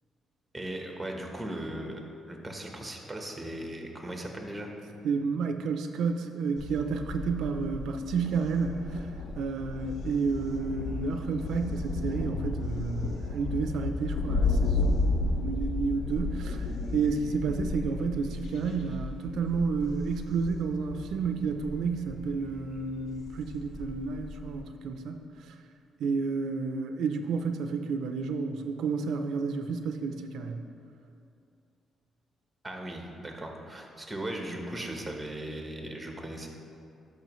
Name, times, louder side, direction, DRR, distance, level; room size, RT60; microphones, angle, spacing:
voice 1, 0.5-2.0 2.3-4.7 32.6-36.5, right 1 dB, 5° right, 1 dB, 1.0 m, -38 dB
voice 2, 5.0-9.1 9.4-16.7 16.9-25.6 26.0-30.6, right 5 dB, 75° right, 6 dB, 0.4 m, -31 dB
Thunder, 6.6-24.6, left 3 dB, 60° left, 0.7 m, -33 dB
12.0 x 5.4 x 3.1 m, 2.5 s
cardioid pair, 125°, 0 cm